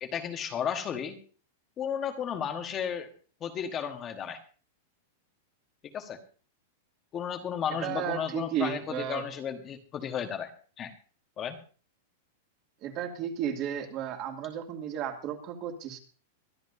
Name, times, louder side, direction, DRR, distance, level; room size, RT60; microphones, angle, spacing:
voice 1, 0.0-1.2 1.8-3.1 3.4-4.4 5.8-6.2 7.1-10.5 10.8-10.9 11.4-11.6, left 8 dB, 25° left, 6 dB, 1.3 m, -33 dB
voice 2, 7.8-9.2 12.8-16.0, right 9 dB, 35° right, 3 dB, 2.4 m, -33 dB
23.0 x 11.5 x 2.7 m, 0.39 s
supercardioid pair, 155°, 0 cm